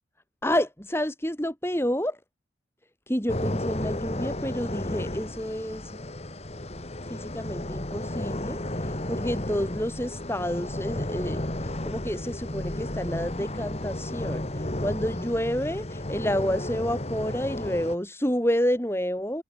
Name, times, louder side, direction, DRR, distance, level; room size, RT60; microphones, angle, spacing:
voice 1, 0.4-2.2 3.1-6.0 7.1-11.4 11.8-14.4 14.8-19.4, equal, 15° left, 4.5 m, -29 dB
sound 1, 3.3-18.0, left 1 dB, 35° left, 1.7 m, -33 dB
head